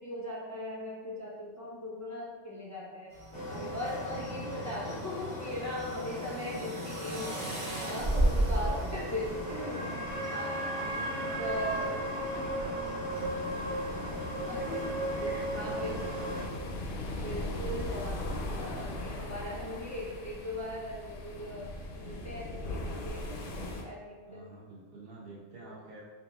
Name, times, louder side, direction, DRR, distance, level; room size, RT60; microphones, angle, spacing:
voice 1, 0.0-10.0 10.3-10.8 11.4-11.9 14.5-16.1 17.2-18.2 18.5-23.4 23.8-24.5 25.6-25.7, left 1 dB, 30° left, -5 dB, 0.3 m, -39 dB
sound 1, 3.1-13.3, right 1 dB, 30° right, 0.8 m, -36 dB
sound 2, 3.3-16.5, right 1 dB, 5° left, 1.1 m, -36 dB
voice 2, 8.3-8.9 10.8-13.6 14.8-16.1 24.3-26.0, right 2 dB, 55° right, -4 dB, 1.1 m, -48 dB
sound 3, 13.1-23.8, left 1 dB, 60° left, 0.6 m, -39 dB
5.0 x 2.9 x 2.3 m, 1.4 s
omnidirectional pair, 1.2 m